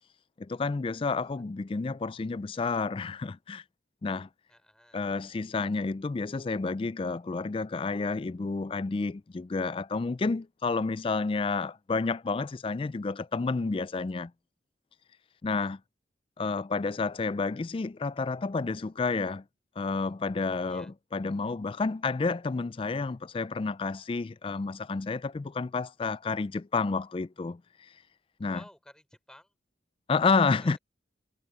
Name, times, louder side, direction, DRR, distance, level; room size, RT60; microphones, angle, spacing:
voice 1, 0.4-3.6 4.0-4.3 4.9-14.3 15.4-15.8 16.4-19.4 19.8-27.9 28.4-28.6 30.1-30.8, left 4 dB, 30° left, 0.3 m, -30 dB
voice 2, 4.5-5.0 20.7-20.9 28.5-29.5, equal, 5° left, 5.8 m, -54 dB
head